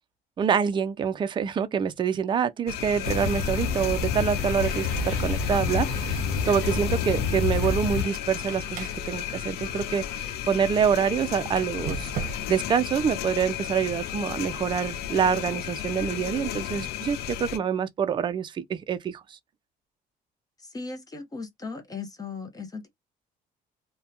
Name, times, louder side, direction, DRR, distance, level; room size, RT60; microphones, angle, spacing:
voice 1, 0.4-19.2, right 7 dB, 30° right, 0.4 m, -26 dB
sound 1, 2.7-17.6, left 11 dB, 75° left, 0.4 m, -34 dB
sound 2, 3.0-8.0, left 5 dB, 90° left, 0.8 m, -28 dB
Squeak, 7.5-10.6 11.4-12.7, right 5 dB, 55° right, 0.7 m, -39 dB
voice 2, 20.6-22.9, left 4 dB, 20° left, 0.7 m, -37 dB
2.7 x 2.2 x 2.3 m
cardioid pair, 110°, 17 cm